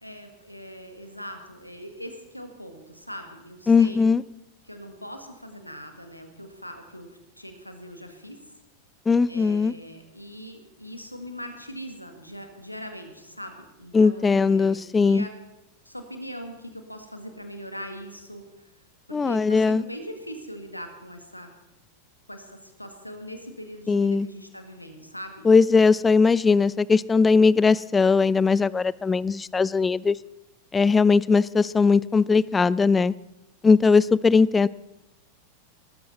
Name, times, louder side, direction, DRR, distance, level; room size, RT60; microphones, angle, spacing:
voice 1, 0.0-4.1 4.6-8.4 9.3-15.3 15.9-18.7 19.1-21.5 22.3-25.5, equal, 90° left, 6 dB, 1.8 m, -41 dB
voice 2, 3.7-4.2 9.1-9.7 13.9-15.3 19.1-19.8 23.9-24.3 25.5-30.2 30.7-33.1 33.6-34.7, left 4 dB, 15° left, 21 dB, 0.4 m, -19 dB
18.5 x 13.0 x 4.2 m, 0.92 s
figure-of-eight pair, 90°, 0 cm